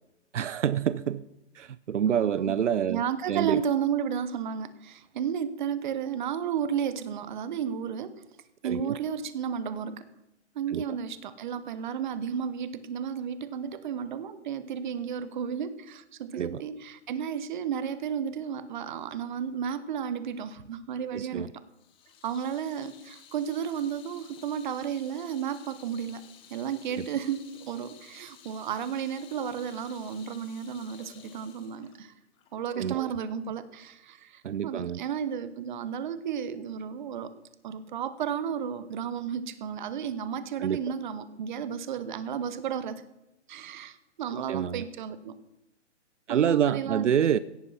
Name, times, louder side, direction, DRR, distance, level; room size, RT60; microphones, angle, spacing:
voice 1, 0.3-1.2 1.6-3.0 3.3-3.6 8.6-8.9 10.7-10.8 16.3-16.6 21.1-21.5 32.8-33.1 34.4-35.0 40.6-40.8 44.5-44.8 46.3-47.4, right 9 dB, 80° right, 0.7 m, -27 dB
voice 2, 2.1-2.5 2.9-8.1 8.6-10.1 10.5-21.5 22.2-26.2 26.5-32.1 32.5-37.3 37.6-43.0 43.5-45.3 46.3-47.1, right 8 dB, 40° right, 1.3 m, -33 dB
Water tap faucet / Sink (filling or washing), 21.7-33.1, left 9 dB, 15° left, 1.1 m, -54 dB
16.5 x 9.5 x 5.8 m
hypercardioid pair, 145°, 36 cm